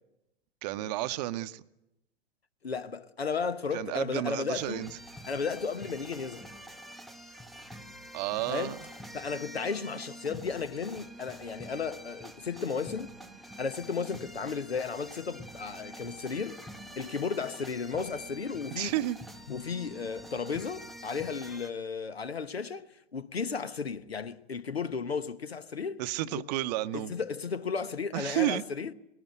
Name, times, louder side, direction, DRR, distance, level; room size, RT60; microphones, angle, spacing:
voice 1, 0.6-1.6 3.7-4.9 8.1-8.8 18.8-19.2 26.0-27.1 28.1-28.6, right 15 dB, 40° right, 0.8 m, -31 dB
voice 2, 2.6-4.8 5.3-6.5 8.5-8.8 9.1-13.1 13.6-16.6 17.0-18.9 19.5-26.0 26.3-26.4 26.9-28.9, left 5 dB, 80° left, 1.1 m, -34 dB
sound 1, 4.6-21.7, equal, ahead, 0.8 m, -47 dB
21.0 x 17.0 x 9.3 m
figure-of-eight pair, 100°, 31 cm